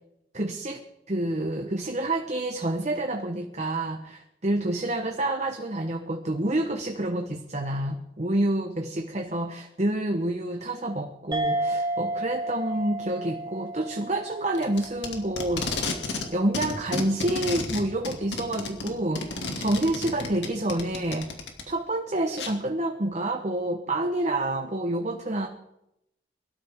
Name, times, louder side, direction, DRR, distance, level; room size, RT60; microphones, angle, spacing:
voice 1, 0.3-15.7 16.3-21.3 21.7-25.5, right 1 dB, 40° right, 4 dB, 1.1 m, -28 dB
sound 1, 11.3-16.2, right 1 dB, 25° right, 1.5 m, -32 dB
Packing tape duct tape, 14.5-16.3 16.5-21.6 22.4-22.5, left 3 dB, 90° left, 2.4 m, -32 dB
23.0 x 13.0 x 3.7 m, 0.82 s
head